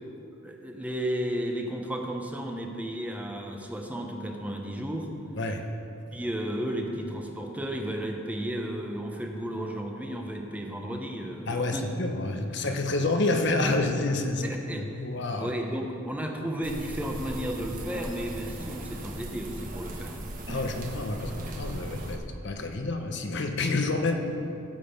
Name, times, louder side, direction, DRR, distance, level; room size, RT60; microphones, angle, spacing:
voice 1, 0.4-5.1 6.1-12.0 12.5-12.6 14.4-15.0 15.4-20.3, equal, 10° right, 2 dB, 1.0 m, -33 dB
voice 2, 5.4-5.7 11.5-15.5 20.5-24.2, left 2 dB, 60° left, 4 dB, 1.0 m, -28 dB
sound 1, 16.6-22.2, right 1 dB, 45° right, 1.2 m, -38 dB
15.5 x 7.6 x 5.3 m, 2.8 s
head